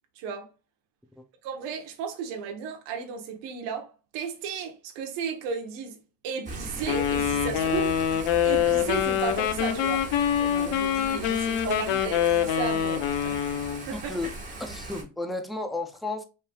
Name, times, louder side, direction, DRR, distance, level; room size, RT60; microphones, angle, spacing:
voice 1, 0.1-0.5 1.4-6.0 6.2-8.0 8.4-10.1 10.4-13.4 13.9-14.0, right 6 dB, 90° right, 1.1 m, -34 dB
Thunder / Rain, 6.4-15.0, right 2 dB, 15° right, 1.3 m, -39 dB
Wind instrument woodwind instrument, 6.9-13.8, left 9 dB, 75° left, 0.8 m, -25 dB
voice 2, 11.7-12.0 13.9-14.3 14.6-16.2, left 2 dB, ahead, 0.3 m, -33 dB
5.7 x 3.3 x 2.3 m
cardioid pair, 145°, 43 cm